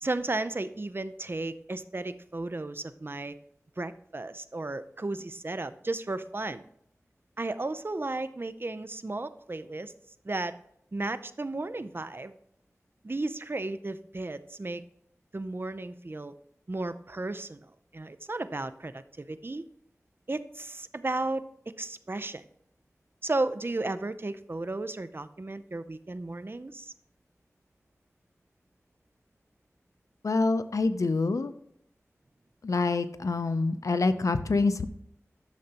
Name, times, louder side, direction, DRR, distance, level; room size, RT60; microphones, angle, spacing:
voice 1, 0.0-3.3 3.8-6.6 7.4-9.9 10.2-10.5 10.9-12.3 13.0-14.8 15.3-16.3 16.7-17.7 17.9-19.6 20.3-21.4 21.8-22.4 23.2-26.9, right 2 dB, 45° right, 13 dB, 0.6 m, -34 dB
voice 2, 30.2-31.5 32.6-34.9, left 3 dB, 85° left, 11 dB, 0.5 m, -26 dB
11.5 x 6.5 x 2.9 m, 0.71 s
wide cardioid pair, 40°, 5 cm